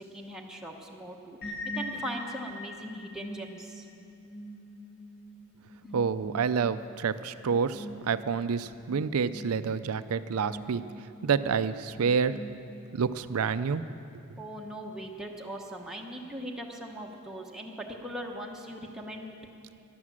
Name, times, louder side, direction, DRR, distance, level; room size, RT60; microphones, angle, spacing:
voice 1, 0.0-3.8 14.4-19.4, equal, 5° right, -1 dB, 1.1 m, -40 dB
sound 1, 1.4-13.0, left 1 dB, 50° left, 2.7 m, -43 dB
voice 2, 5.9-10.8 11.2-12.4 12.9-13.8, right 6 dB, 85° right, 13 dB, 0.5 m, -28 dB
12.5 x 11.5 x 7.4 m, 2.5 s
head